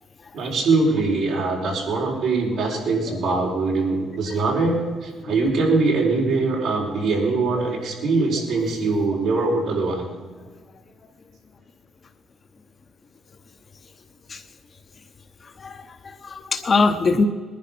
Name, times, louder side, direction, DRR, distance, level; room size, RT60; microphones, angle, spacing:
voice 1, 0.3-10.1, right 3 dB, 85° right, -2 dB, 4.5 m, -22 dB
voice 2, 15.6-17.3, left 4 dB, 40° left, 6 dB, 1.0 m, -22 dB
20.0 x 10.5 x 6.0 m, 1.5 s
cardioid pair, 90°, 0 cm